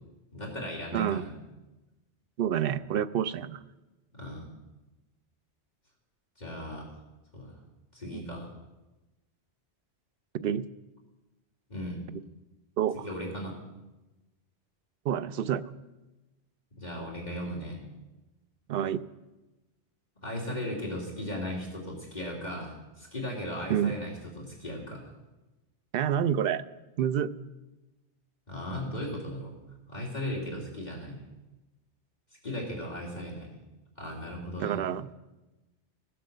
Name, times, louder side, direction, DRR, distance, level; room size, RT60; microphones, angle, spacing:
voice 1, 0.3-1.3 4.1-4.5 6.4-6.9 7.3-7.5 7.9-8.5 11.7-12.0 13.0-13.6 16.8-17.8 20.2-25.0 28.5-29.5 29.9-31.2 32.4-33.5 34.0-34.8, left 1 dB, 35° left, -3 dB, 2.7 m, -36 dB
voice 2, 0.9-1.3 2.4-3.6 8.1-8.3 10.4-10.6 12.8-13.1 15.0-15.6 18.7-19.0 23.7-23.9 25.9-26.6 27.0-27.3 34.6-35.1, right 9 dB, 60° right, 13 dB, 0.7 m, -28 dB
15.5 x 7.7 x 6.6 m, 1.1 s
omnidirectional pair, 1.2 m